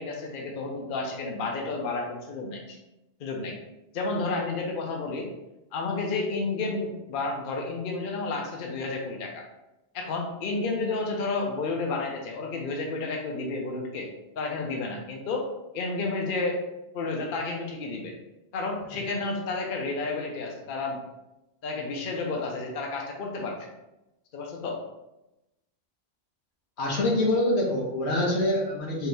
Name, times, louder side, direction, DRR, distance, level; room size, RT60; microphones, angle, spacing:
voice 1, 0.0-2.8 3.2-3.5 3.9-5.3 5.7-9.4 9.9-14.1 14.4-15.5 15.7-16.6 16.9-18.1 18.5-21.0 21.6-23.7 24.3-24.8, left 3 dB, 55° left, 1 dB, 0.8 m, -31 dB
voice 2, 26.8-29.1, left 1 dB, 85° left, -2 dB, 1.2 m, -25 dB
4.4 x 2.8 x 3.2 m, 0.94 s
omnidirectional pair, 1.1 m